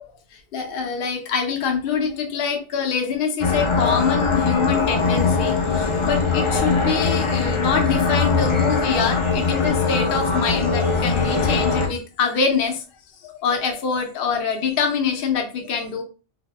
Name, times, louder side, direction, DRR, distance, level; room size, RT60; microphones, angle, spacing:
voice 1, 0.0-12.8 13.2-16.0, left 6 dB, 55° left, 3 dB, 0.8 m, -24 dB
sound 1, 3.4-11.9, left 4 dB, 40° left, 0.5 m, -21 dB
2.8 x 2.7 x 3.2 m, 0.35 s
omnidirectional pair, 1.2 m